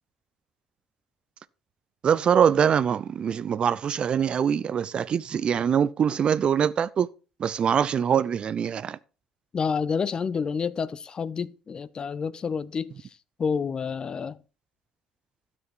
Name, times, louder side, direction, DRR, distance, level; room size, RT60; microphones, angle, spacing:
voice 1, 2.0-7.1 7.4-9.0, right 8 dB, 45° right, 0.5 m, -23 dB
voice 2, 9.5-12.9 13.4-14.4, left 6 dB, 35° left, 0.6 m, -29 dB
12.5 x 6.1 x 4.6 m
hypercardioid pair, 60°, 2 cm